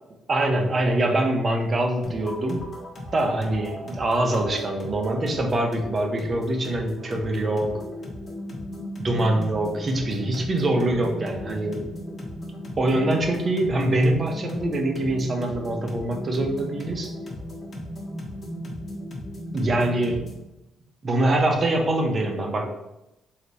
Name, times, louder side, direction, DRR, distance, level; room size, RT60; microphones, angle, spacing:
voice 1, 0.3-2.7 3.1-7.7 9.0-11.9 12.8-17.1 19.5-20.2 21.0-22.7, right 1 dB, 40° right, 3 dB, 0.7 m, -24 dB
sound 1, 2.0-20.5, left 1 dB, 45° left, 1.0 m, -36 dB
3.3 x 2.9 x 4.0 m, 0.91 s
cardioid pair, 90°, 0 cm